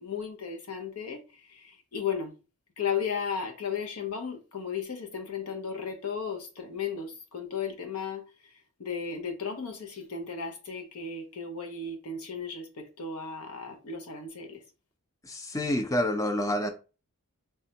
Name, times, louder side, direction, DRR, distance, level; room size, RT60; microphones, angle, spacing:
voice 1, 0.0-2.3 2.8-8.2 8.8-14.6, left 6 dB, 85° left, 0.7 m, -35 dB
voice 2, 15.2-16.7, left 1 dB, 15° left, 0.3 m, -28 dB
3.4 x 2.1 x 2.8 m
head